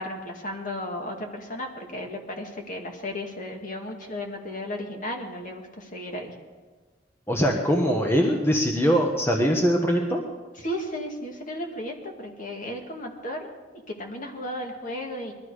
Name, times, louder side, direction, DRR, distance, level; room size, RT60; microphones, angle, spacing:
voice 1, 0.0-6.3 10.6-13.5 13.9-15.3, left 1 dB, 45° left, 2 dB, 2.2 m, -34 dB
voice 2, 7.3-10.2, equal, 15° left, 2 dB, 1.2 m, -22 dB
20.5 x 13.0 x 5.0 m, 1.4 s
head